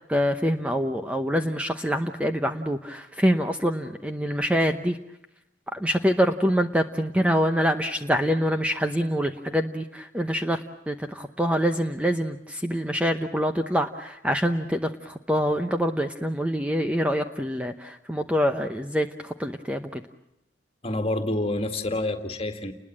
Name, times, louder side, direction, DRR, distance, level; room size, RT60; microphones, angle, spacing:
voice 1, 0.1-5.0 5.7-20.0, equal, 5° right, 6 dB, 0.8 m, -25 dB
voice 2, 20.8-22.7, left 2 dB, 30° left, 7 dB, 2.1 m, -27 dB
30.0 x 21.0 x 7.6 m, 0.86 s
head